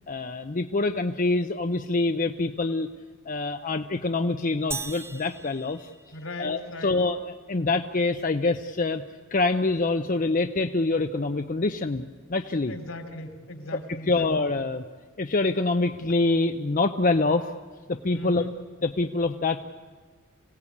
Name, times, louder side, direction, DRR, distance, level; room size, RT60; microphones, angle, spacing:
voice 1, 0.1-2.9 3.3-5.9 6.4-9.0 9.3-12.0 12.3-12.7 14.1-14.8 15.2-17.5 17.9-18.5 18.8-19.6, left 3 dB, 40° left, 6 dB, 0.7 m, -25 dB
sound 1, 4.7-6.6, right 4 dB, 15° right, 0.7 m, -38 dB
voice 2, 6.1-7.0 12.7-14.5 18.1-18.6, left 1 dB, 75° left, 6 dB, 3.3 m, -38 dB
26.5 x 17.5 x 8.6 m, 1.4 s
head